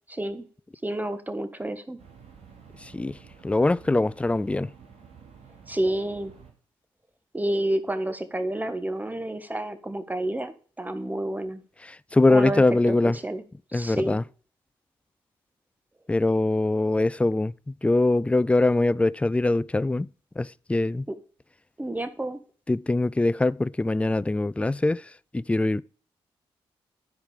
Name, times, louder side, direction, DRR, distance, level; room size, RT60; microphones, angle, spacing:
voice 1, 0.1-0.4 0.8-2.0 5.7-6.3 7.3-11.6 12.3-13.4 13.7-14.2 21.1-21.2 21.8-22.4, right 1 dB, 15° right, 1.4 m, -29 dB
sound 1, 2.0-6.5, right 6 dB, 70° right, 2.4 m, -50 dB
voice 2, 3.4-4.7 12.1-13.2 13.7-14.2 16.1-20.1 20.4-21.1 22.7-25.0 25.3-25.8, left 2 dB, 10° left, 0.3 m, -22 dB
10.5 x 4.9 x 5.0 m
supercardioid pair, 45°, 11 cm